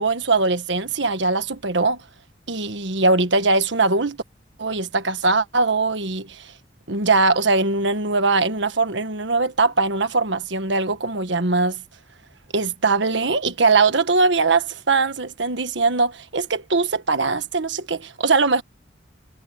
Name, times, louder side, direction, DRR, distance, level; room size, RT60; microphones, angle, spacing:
voice 1, 0.0-2.0 2.5-4.2 4.6-6.5 6.9-11.8 12.5-18.6, right 3 dB, 75° right, 1.5 m, -21 dB
head